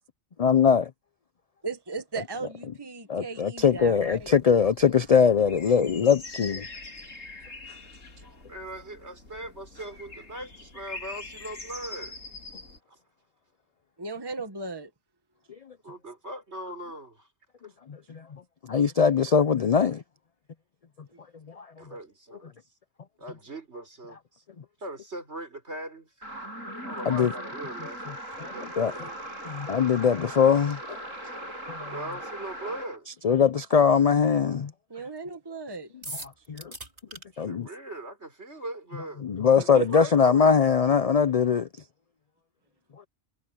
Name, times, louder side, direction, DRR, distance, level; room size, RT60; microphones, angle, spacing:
voice 1, 0.4-0.8 3.1-6.7 18.1-18.2 18.7-20.0 21.6-21.7 27.1-27.3 28.4-28.5 28.8-28.9 29.4-31.0 31.7-31.9 33.2-34.7 36.5-36.7 37.4-37.7 39.2-41.7, left 6 dB, 50° left, 0.4 m, -21 dB
voice 2, 1.6-4.3 14.0-14.9 34.9-35.9 39.7-39.9, right 3 dB, 20° right, 1.5 m, -36 dB
sound 1, 3.6-12.8, left 3 dB, 80° left, 3.7 m, -44 dB
voice 3, 8.2-12.2 12.9-13.0 15.8-17.3 17.6-17.7 21.8-22.5 23.2-24.4 24.8-26.1 26.8-28.0 28.4-29.2 31.9-33.1 37.0-39.2 39.5-40.6, right 1 dB, 60° right, 5.2 m, -40 dB
sound 2, 26.2-33.0, right 1 dB, 85° right, 8.6 m, -39 dB
sound 3, 36.0-37.2, right 2 dB, 40° right, 3.9 m, -39 dB
omnidirectional pair, 1.3 m